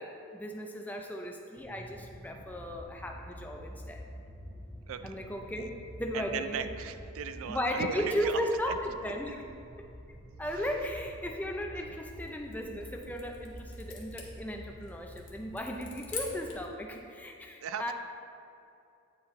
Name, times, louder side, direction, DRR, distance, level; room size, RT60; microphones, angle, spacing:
voice 1, 0.0-4.0 5.0-5.7 6.0-6.7 7.4-9.4 10.4-17.9, equal, 10° left, 2 dB, 0.4 m, -36 dB
sound 1, 1.6-16.4, equal, 15° right, 1.1 m, -48 dB
voice 2, 6.1-8.4 8.7-8.8 13.1-13.2 17.6-17.9, right 7 dB, 75° right, 10 dB, 0.3 m, -37 dB
sound 2, 12.2-16.7, left 5 dB, 80° left, 1.1 m, -46 dB
8.7 x 4.6 x 3.1 m, 2.6 s
head